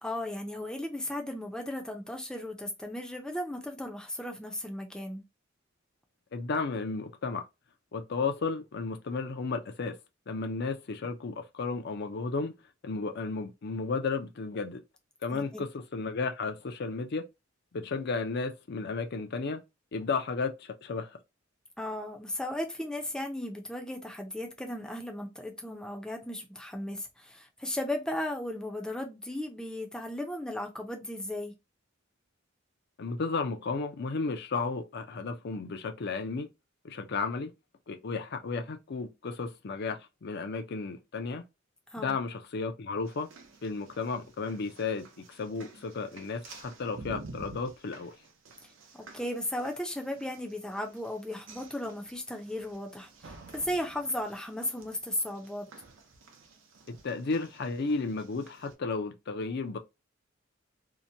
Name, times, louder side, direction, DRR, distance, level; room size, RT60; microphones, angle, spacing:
voice 1, 0.0-5.2 15.3-15.6 21.8-31.5 41.9-42.2 48.9-55.7, left 1 dB, 5° left, 0.5 m, -36 dB
voice 2, 6.3-7.4 7.9-10.0 10.3-12.5 12.8-14.8 15.2-17.2 17.7-19.6 19.9-21.1 33.0-36.5 36.8-37.5 37.9-41.4 42.0-43.3 43.6-45.1 45.4-48.1 56.9-59.8, left 4 dB, 55° left, 0.5 m, -33 dB
sound 1, 43.0-58.7, right 3 dB, 70° right, 0.6 m, -51 dB
2.8 x 2.1 x 2.6 m
head